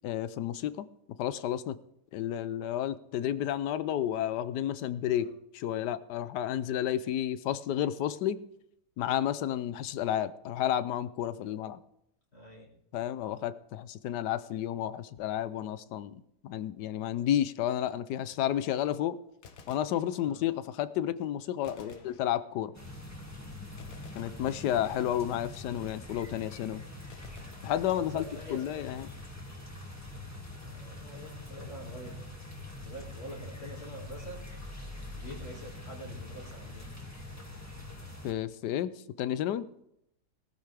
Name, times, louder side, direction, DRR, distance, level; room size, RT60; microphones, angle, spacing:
voice 1, 0.0-0.8 1.2-1.8 2.1-8.4 9.0-11.8 12.9-19.2 19.7-22.7 24.1-26.8 27.6-28.2 28.5-29.1 38.2-39.7, left 11 dB, 85° left, 15 dB, 1.3 m, -31 dB
voice 2, 12.3-12.7 20.2-20.4 21.7-22.1 27.9-28.8 30.6-32.2 32.8-34.5 35.1-36.9, equal, 40° left, -3 dB, 2.4 m, -46 dB
Gunshot gunfire, 19.3-20.7 21.6-22.9 23.8-25.2 27.1-28.4, left 6 dB, 60° left, 1.4 m, -54 dB
sound 1, 22.7-38.3, left 2 dB, 10° left, 1.9 m, -44 dB
19.5 x 14.0 x 3.4 m, 0.78 s
omnidirectional pair, 1.8 m